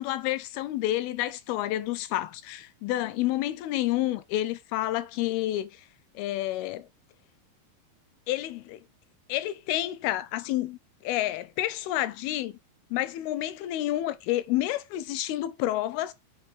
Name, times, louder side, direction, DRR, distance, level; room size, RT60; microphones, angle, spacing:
voice 1, 0.0-5.8 6.2-6.9 8.3-8.8 9.3-12.6 12.9-16.1, left 14 dB, 80° left, 2.4 m, -29 dB
6.9 x 5.2 x 4.8 m
omnidirectional pair, 4.7 m